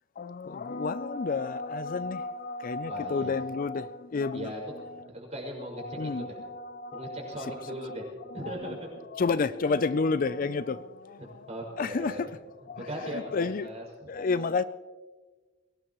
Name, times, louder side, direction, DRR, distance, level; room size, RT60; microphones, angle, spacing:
voice 1, 0.2-5.1 5.8-7.9 8.3-8.7 9.1-11.5 11.8-12.4 12.7-13.7 14.1-14.6, left 4 dB, 45° left, 0.4 m, -31 dB
voice 2, 2.9-3.3 4.3-4.6 5.1-6.4 6.9-8.0 8.3-8.9 10.7-10.8 11.2-12.3 12.8-14.1, right 1 dB, 35° right, 5.7 m, -39 dB
22.5 x 18.5 x 3.1 m
head